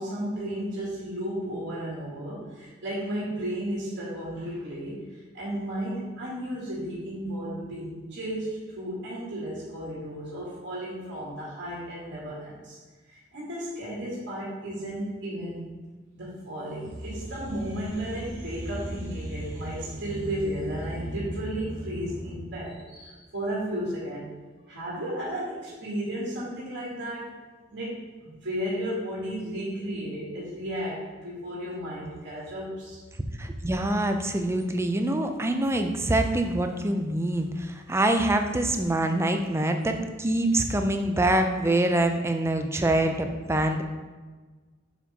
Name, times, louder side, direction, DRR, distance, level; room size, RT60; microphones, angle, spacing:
voice 1, 0.0-12.8 13.1-15.8 16.1-24.2 24.7-27.3 27.7-33.0, right 1 dB, 65° right, -7 dB, 2.3 m, -34 dB
sound 1, 16.8-22.4, equal, 35° right, 1.2 m, -37 dB
voice 2, 33.4-43.8, right 1 dB, 15° right, 6 dB, 0.5 m, -25 dB
7.3 x 5.6 x 3.6 m, 1.3 s
head